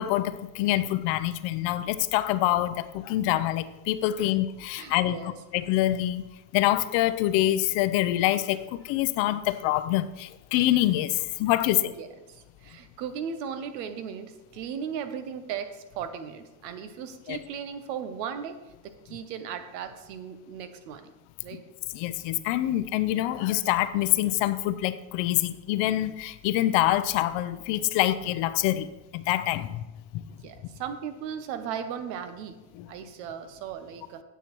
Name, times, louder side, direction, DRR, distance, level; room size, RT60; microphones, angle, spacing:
voice 1, 0.0-6.2 6.5-11.9 17.3-17.4 21.9-29.8 30.1-30.2 32.7-32.9, left 14 dB, 65° left, 13 dB, 0.6 m, -26 dB
voice 2, 4.8-5.3 11.9-18.6 18.8-21.1 21.4-21.6 30.4-32.6 32.9-34.2, right 7 dB, 85° right, 10 dB, 0.9 m, -37 dB
9.0 x 6.9 x 3.1 m, 1.1 s
supercardioid pair, 90°, 48 cm